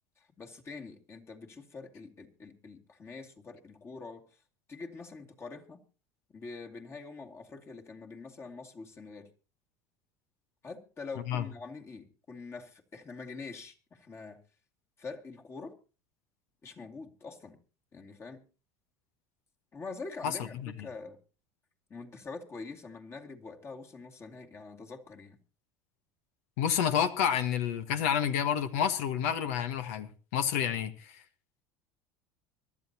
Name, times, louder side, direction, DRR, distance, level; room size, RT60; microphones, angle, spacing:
voice 1, 0.2-4.2 4.7-5.8 6.3-9.3 10.6-14.4 15.0-15.8 16.6-17.6 17.9-18.4 19.7-21.2 21.9-25.4, left 4 dB, 30° left, 2.4 m, -45 dB
voice 2, 20.2-20.7 26.6-31.2, left 8 dB, 75° left, 1.3 m, -29 dB
24.0 x 12.0 x 2.9 m
hypercardioid pair, 90°, 8 cm